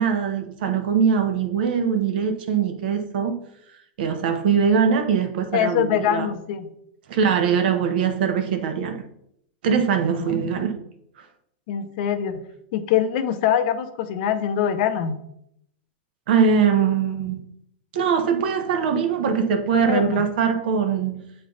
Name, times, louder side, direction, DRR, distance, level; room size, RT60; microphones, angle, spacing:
voice 1, 0.0-3.4 4.0-6.3 7.1-9.0 9.6-10.8 16.3-17.4 17.9-21.2, right 6 dB, 70° right, 1.0 m, -22 dB
voice 2, 5.5-6.7 10.2-10.4 11.7-12.4 12.7-15.2 19.7-20.2, left 9 dB, 55° left, 0.6 m, -23 dB
7.9 x 3.3 x 3.9 m
supercardioid pair, 150°, 5 cm